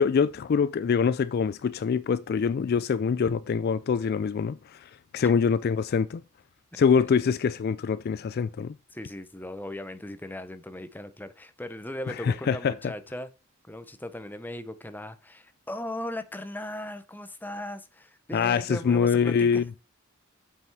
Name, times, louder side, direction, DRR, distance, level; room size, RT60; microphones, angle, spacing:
voice 1, 0.0-6.2 6.8-8.7 12.2-12.7 18.3-19.6, left 6 dB, 50° left, 0.3 m, -24 dB
voice 2, 8.9-13.3 13.6-19.6, left 1 dB, 10° left, 0.8 m, -38 dB
7.7 x 5.6 x 4.7 m
head